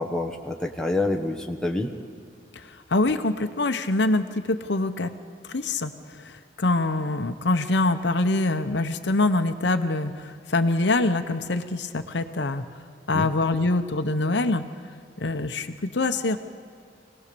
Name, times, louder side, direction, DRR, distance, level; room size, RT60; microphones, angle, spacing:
voice 1, 0.0-1.9 13.1-13.3, left 2 dB, 5° left, 1 dB, 1.3 m, -27 dB
voice 2, 2.6-5.1 5.4-12.7 13.1-14.6 15.2-16.4, left 2 dB, 75° left, 9 dB, 0.9 m, -24 dB
25.5 x 18.5 x 6.9 m, 2.3 s
head